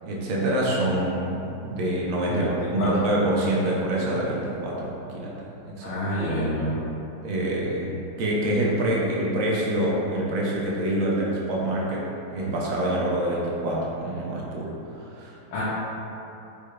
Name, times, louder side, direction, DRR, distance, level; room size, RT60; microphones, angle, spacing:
voice 1, 0.0-2.5 2.7-5.4 5.6-6.0 7.2-15.3, right 1 dB, 70° right, -4 dB, 1.4 m, -26 dB
voice 2, 2.3-2.9 5.8-6.8 15.5-15.6, equal, 85° left, -11 dB, 1.8 m, -27 dB
4.7 x 2.3 x 4.7 m, 3.0 s
omnidirectional pair, 2.4 m